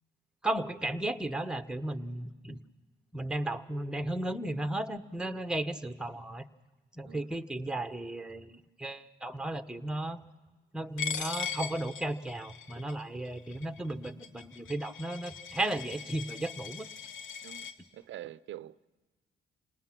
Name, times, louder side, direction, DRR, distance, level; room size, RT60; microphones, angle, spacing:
voice 1, 0.4-2.6 3.1-6.4 6.9-10.2 10.7-16.9, right 1 dB, 5° right, 1.1 m, -35 dB
Coin (dropping), 11.0-17.7, left 7 dB, 80° left, 1.5 m, -40 dB
voice 2, 17.4-18.9, right 13 dB, 75° right, 0.7 m, -46 dB
28.0 x 19.5 x 5.9 m
cardioid pair, 90°, 20 cm